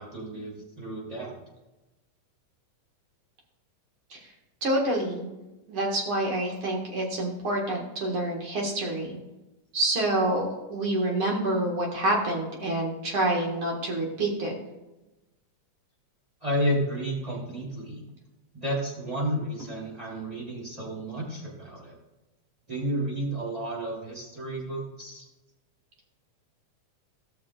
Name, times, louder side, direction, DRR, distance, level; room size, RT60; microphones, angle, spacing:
voice 1, 0.0-1.3 16.4-18.0 18.5-21.9 22.7-25.2, equal, 10° right, -5 dB, 2.8 m, -31 dB
voice 2, 4.6-5.3 5.7-9.2 9.7-14.5, right 1 dB, 45° right, -1 dB, 2.2 m, -27 dB
17.0 x 6.4 x 2.4 m, 1.0 s
omnidirectional pair, 3.7 m